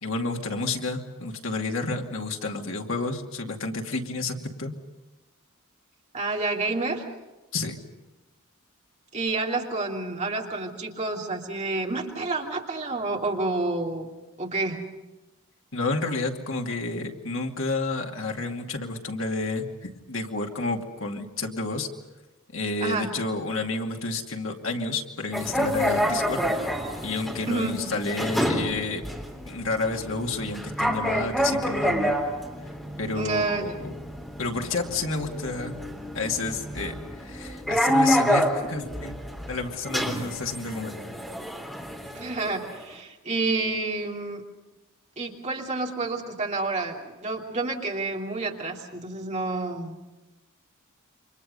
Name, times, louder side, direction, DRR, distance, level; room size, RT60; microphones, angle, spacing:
voice 1, 0.0-4.7 7.5-7.8 15.7-21.9 22.5-26.4 27.0-29.1 29.4-32.1 33.0-33.9 34.4-35.8 36.1-39.2 39.5-41.0, left 3 dB, 65° left, 2 dB, 2.4 m, -30 dB
voice 2, 6.1-7.1 9.1-14.1 14.4-14.9 22.8-23.1 27.5-27.8 33.1-33.8 42.1-44.4 45.2-50.0, right 3 dB, 35° right, 0 dB, 3.1 m, -29 dB
sound 1, 25.3-42.8, equal, ahead, 3.6 m, -28 dB
28.5 x 25.5 x 5.5 m, 1.1 s
head